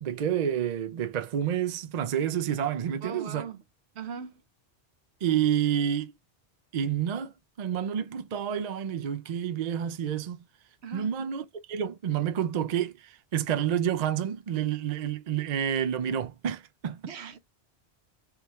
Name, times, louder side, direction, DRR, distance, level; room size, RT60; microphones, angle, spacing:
voice 1, 0.0-3.4 5.2-6.1 6.7-10.4 10.9-17.0, right 9 dB, 50° right, 0.5 m, -29 dB
voice 2, 3.0-3.6 3.9-4.4 10.8-11.1 17.1-17.4, right 6 dB, 80° right, 1.0 m, -39 dB
3.5 x 3.2 x 3.0 m
omnidirectional pair, 1.1 m